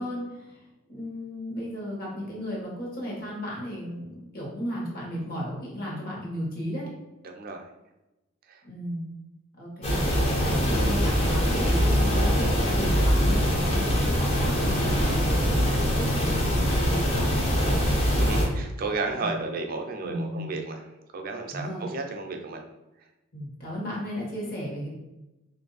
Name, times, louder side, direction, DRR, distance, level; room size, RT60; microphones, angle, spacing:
voice 1, 0.0-6.9 8.6-9.0 9.6-10.0 10.3-18.6 19.1-19.4 20.0-20.5 21.5-21.8 23.3-24.9, equal, 45° left, -4 dB, 1.2 m, -35 dB
voice 2, 7.2-7.7 8.5-8.6 18.1-20.8 21.1-22.6, right 3 dB, 45° right, 3 dB, 0.5 m, -33 dB
sound 1, 9.8-18.5, equal, 30° left, 0.7 m, -23 dB
3.1 x 2.6 x 3.9 m, 1.0 s
head